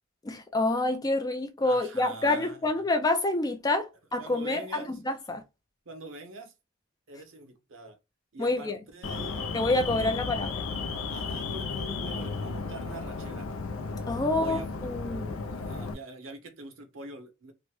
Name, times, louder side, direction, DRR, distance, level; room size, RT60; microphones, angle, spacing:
voice 1, 0.2-5.4 8.4-8.8 9.5-10.6 14.1-15.3, left 2 dB, 20° left, 0.3 m, -28 dB
voice 2, 1.6-2.8 4.2-5.0 5.9-6.5 7.1-8.0 8.3-9.5 9.9-10.3 11.1-13.5 14.2-14.7 15.5-17.5, right 2 dB, 65° right, 0.7 m, -44 dB
Alarm, 9.0-15.9, left 4 dB, 80° left, 0.4 m, -34 dB
3.0 x 2.1 x 3.0 m
head